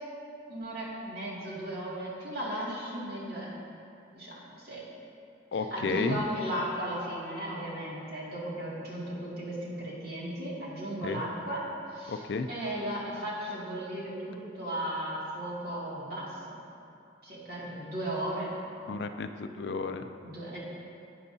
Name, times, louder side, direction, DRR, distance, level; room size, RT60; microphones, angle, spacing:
voice 1, 0.5-3.6 4.1-4.8 5.7-11.7 11.9-12.2 12.5-16.6 17.2-18.5 20.2-20.6, right 1 dB, 50° right, -6 dB, 2.2 m, -36 dB
voice 2, 5.5-6.2 11.0-11.2 12.1-12.5 18.9-20.0, left 4 dB, 55° left, 8 dB, 0.4 m, -32 dB
12.0 x 8.7 x 2.7 m, 2.6 s
head